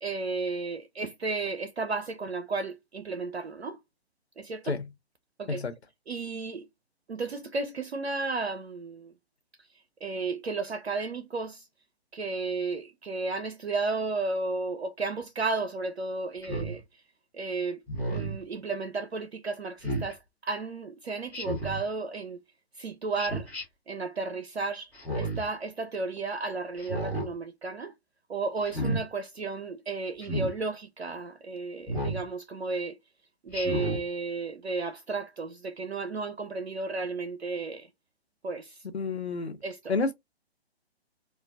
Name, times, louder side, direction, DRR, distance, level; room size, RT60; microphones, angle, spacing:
voice 1, 0.0-3.8 4.4-4.8 5.4-5.6 6.1-6.6 7.1-9.1 10.0-11.6 12.1-16.8 17.4-17.8 18.1-20.2 20.4-22.4 22.8-23.5 23.9-24.9 25.1-27.9 28.3-32.9 33.5-37.9 38.4-38.7 39.6-39.8, right 3 dB, 80° right, 0.5 m, -33 dB
Speech synthesizer, 16.4-16.8 17.9-18.4 19.8-20.1 21.3-21.8 23.2-23.6 24.9-25.5 26.8-27.3 28.6-29.0 30.2-30.5 31.9-32.2 33.5-34.0, right 1 dB, 5° left, 0.9 m, -31 dB
voice 2, 38.9-39.6 39.9-40.1, left 4 dB, 80° left, 0.7 m, -29 dB
3.1 x 2.3 x 2.4 m
figure-of-eight pair, 130°, 32 cm